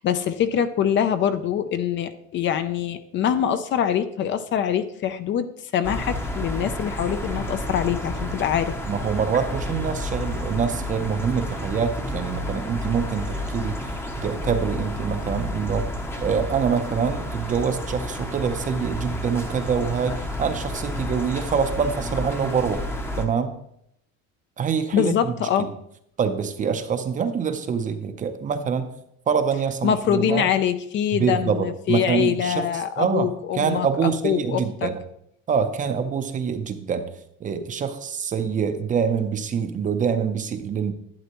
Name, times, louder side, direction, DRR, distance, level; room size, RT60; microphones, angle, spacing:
voice 1, 0.0-5.5 5.7-8.7 24.9-25.7 29.8-34.9, left 9 dB, 40° left, 11 dB, 0.5 m, -24 dB
sound 1, 5.8-23.2, left 1 dB, 10° left, 0.8 m, -30 dB
voice 2, 8.9-13.9 14.2-15.9 16.2-22.9 23.2-23.6 24.6-25.7 26.2-28.9 29.3-30.5 31.2-35.0 35.5-37.1 37.4-40.9, right 6 dB, 25° right, 9 dB, 0.6 m, -25 dB
11.5 x 8.8 x 3.0 m, 0.74 s
cardioid pair, 150°, 30 cm